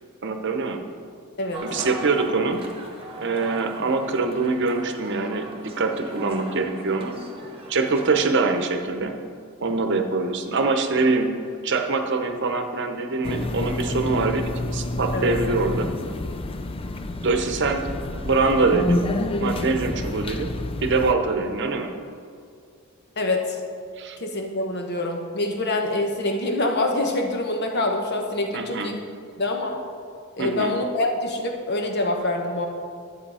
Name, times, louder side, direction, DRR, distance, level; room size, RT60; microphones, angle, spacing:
voice 1, 0.2-0.8 1.6-2.7 3.2-7.1 7.7-9.2 9.6-11.4 11.6-15.9 17.2-17.9 18.1-19.0 19.4-21.9 24.0-24.2 28.5-28.9 30.4-30.7, right 3 dB, 60° right, 6 dB, 0.8 m, -24 dB
sound 1, 1.5-8.7, right 1 dB, 25° right, 1.2 m, -39 dB
sound 2, 13.2-21.1, left 1 dB, 25° left, 0.4 m, -28 dB
voice 2, 23.2-23.6 24.2-29.0 29.4-29.8 30.4-32.7, left 2 dB, 55° left, 3 dB, 1.2 m, -25 dB
11.5 x 7.8 x 4.8 m, 2.2 s
head